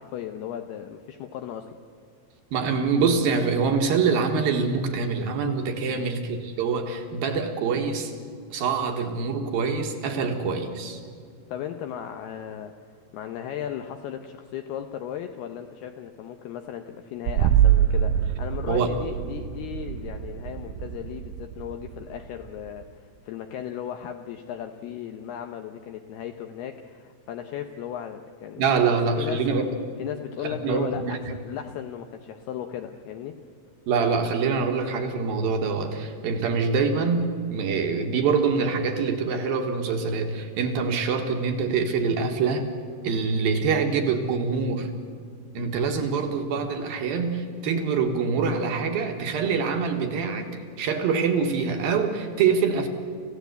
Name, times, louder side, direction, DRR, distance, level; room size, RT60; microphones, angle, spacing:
voice 1, 0.0-1.8 5.8-6.1 11.5-28.8 29.2-29.5 30.0-33.5, left 9 dB, 75° left, 6 dB, 2.4 m, -36 dB
voice 2, 2.5-8.1 8.5-11.0 18.7-18.9 28.6-29.7 30.4-31.2 33.9-42.7 43.0-45.0 45.5-50.5 50.8-52.9, right 5 dB, 60° right, 5 dB, 2.9 m, -25 dB
sound 1, 17.3-22.8, right 10 dB, 80° right, 2.8 m, -25 dB
27.5 x 15.5 x 8.2 m, 2.3 s
omnidirectional pair, 5.4 m